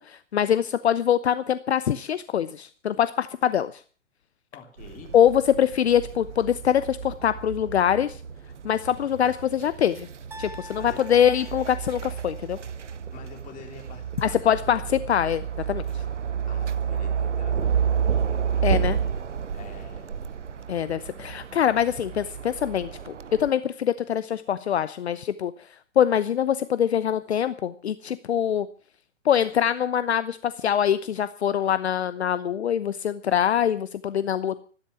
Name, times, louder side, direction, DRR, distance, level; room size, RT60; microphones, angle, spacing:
voice 1, 0.1-3.7 5.1-8.2 8.6-10.1 10.4-12.6 14.2-15.8 18.6-19.0 20.7-25.5 26.0-28.7 29.2-34.6, left 9 dB, 60° left, 14 dB, 0.9 m, -24 dB
voice 2, 4.5-5.2 10.8-11.0 13.1-14.7 16.5-18.2 19.5-20.2, left 6 dB, 20° left, 3 dB, 4.1 m, -47 dB
sound 1, 4.8-23.5, right 7 dB, 75° right, 1.0 m, -31 dB
sound 2, 10.3-12.4, left 2 dB, 5° right, 1.0 m, -45 dB
14.0 x 13.0 x 5.9 m, 0.41 s
figure-of-eight pair, 115°, 36 cm